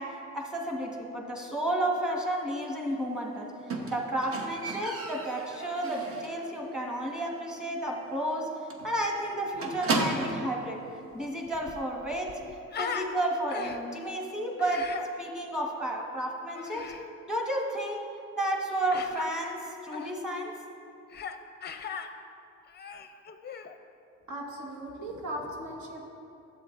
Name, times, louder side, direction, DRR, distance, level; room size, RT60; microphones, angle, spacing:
voice 1, 0.0-3.5 3.9-8.5 8.8-10.8 11.1-12.4 12.8-14.9 15.2-16.9 17.3-18.0 18.4-20.5, right 1 dB, ahead, 0 dB, 1.2 m, -32 dB
Squeak, 3.7-6.5 6.8-7.2 7.5-7.6 7.9-8.0 8.3-8.4 8.7-10.5 11.4-11.5, right 3 dB, 50° right, 1.0 m, -34 dB
Human voice, 11.1-11.2 11.5-13.1 13.5-14.0 14.6-15.1 16.5-17.0 18.9-19.3 19.9-20.1 21.1-21.4 21.6-22.1 22.6-23.7, left 6 dB, 35° left, 0.5 m, -38 dB
voice 2, 24.3-26.1, right 1 dB, 70° right, -1 dB, 1.4 m, -38 dB
11.5 x 7.6 x 2.5 m, 2.6 s
cardioid pair, 90°, 30 cm